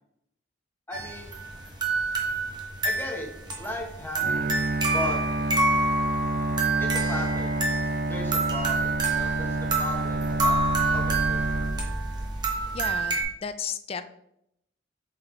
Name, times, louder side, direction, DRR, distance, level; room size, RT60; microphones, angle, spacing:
voice 1, 0.9-1.3 2.8-3.3 3.6-4.6 4.9-5.2 6.8-7.6 8.1-10.6 10.9-11.4, left 2 dB, 10° left, 1 dB, 1.0 m, -36 dB
sound 1, 0.9-13.2, right 3 dB, 20° right, 1.0 m, -28 dB
Bowed string instrument, 4.2-12.4, right 2 dB, 45° right, 0.4 m, -29 dB
voice 2, 12.7-14.0, left 6 dB, 30° left, 10 dB, 0.4 m, -34 dB
5.8 x 4.0 x 4.3 m, 0.77 s
head